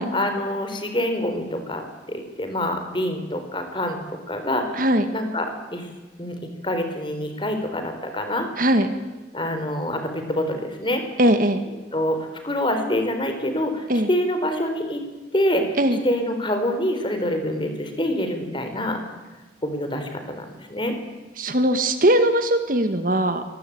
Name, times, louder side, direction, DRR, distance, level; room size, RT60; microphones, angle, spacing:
voice 1, 0.1-4.8 5.1-5.9 6.2-6.4 6.6-8.5 9.3-11.0 11.9-15.0 15.3-15.8 16.0-19.0 19.6-20.9, left 1 dB, 25° left, 6 dB, 4.1 m, -26 dB
voice 2, 4.7-5.1 8.6-8.9 11.2-11.6 13.9-14.1 15.8-16.0 21.4-23.4, right 1 dB, 45° right, 8 dB, 1.9 m, -20 dB
25.5 x 20.0 x 8.8 m, 1.2 s
head